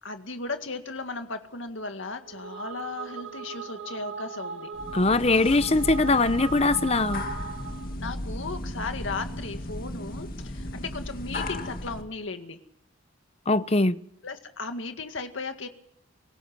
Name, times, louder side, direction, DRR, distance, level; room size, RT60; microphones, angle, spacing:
voice 1, 0.0-4.7 8.0-12.6 14.2-15.7, left 3 dB, 75° left, 2.0 m, -36 dB
sound 1, 2.2-7.9, right 5 dB, 65° right, 2.2 m, -38 dB
sound 2, 4.7-12.0, left 1 dB, 45° left, 2.2 m, -35 dB
voice 2, 4.9-7.2 13.5-14.0, left 3 dB, 30° left, 0.8 m, -22 dB
25.5 x 18.0 x 6.0 m
head